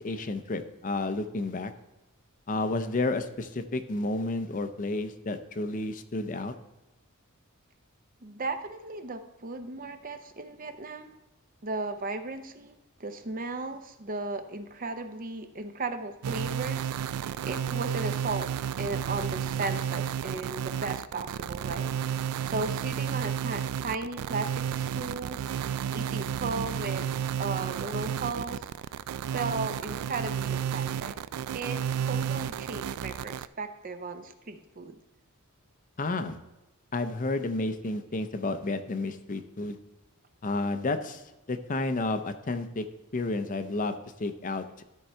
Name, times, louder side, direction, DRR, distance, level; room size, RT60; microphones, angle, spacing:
voice 1, 0.0-1.7 2.5-6.5 36.0-36.4 36.9-39.8 40.4-41.2 41.5-42.8 43.1-44.8, left 2 dB, 35° left, 9 dB, 0.6 m, -31 dB
voice 2, 8.2-11.2 11.6-18.5 18.8-21.9 22.4-25.5 25.9-27.1 27.4-28.7 29.3-31.1 31.5-35.0, right 3 dB, 40° right, 8 dB, 0.7 m, -36 dB
sound 1, 16.2-33.5, right 8 dB, 90° right, 0.3 m, -32 dB
13.0 x 4.7 x 4.4 m, 0.99 s
head